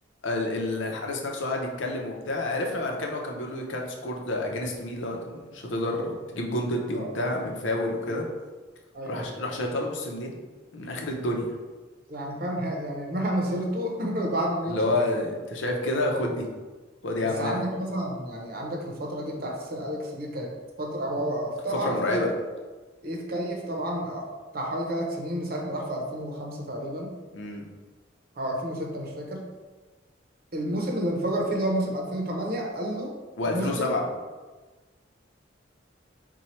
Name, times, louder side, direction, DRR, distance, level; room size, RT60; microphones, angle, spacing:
voice 1, 0.2-8.3 9.1-10.4 10.7-11.5 14.7-16.5 17.0-17.6 21.8-22.3 27.3-27.7 33.4-34.0, left 1 dB, 90° left, 0 dB, 0.7 m, -29 dB
voice 2, 8.9-9.3 12.1-15.0 17.2-20.5 20.8-22.2 23.0-24.3 24.5-27.2 28.4-29.5 30.5-33.2 33.5-33.9, right 1 dB, 50° right, 0 dB, 0.7 m, -30 dB
4.3 x 2.3 x 4.3 m, 1.3 s
head